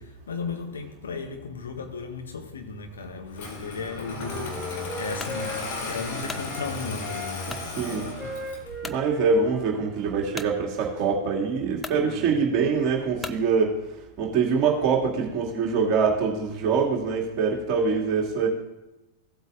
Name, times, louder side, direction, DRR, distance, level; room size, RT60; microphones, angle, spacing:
voice 1, 0.0-7.6 8.0-8.4 8.6-8.8 12.0-12.3, left 4 dB, 70° left, 1.3 m, -36 dB
Engine starting, 3.3-8.7, left 3 dB, 50° left, 2.0 m, -35 dB
Wind instrument woodwind instrument, 3.8-6.7 7.0-10.3, equal, 5° right, 2.6 m, -39 dB
sound 1, 5.2-5.4 6.0-6.5 7.5-7.7 8.3-8.4 8.8-9.0 10.4-10.5 11.3-11.4 11.8-12.0 13.2-13.5, left 3 dB, 10° left, 0.5 m, -37 dB
voice 2, 7.5-8.1 8.8-13.8 14.2-18.5, right 5 dB, 35° right, 2.2 m, -24 dB
16.0 x 8.0 x 2.5 m
figure-of-eight pair, 90°, 0 cm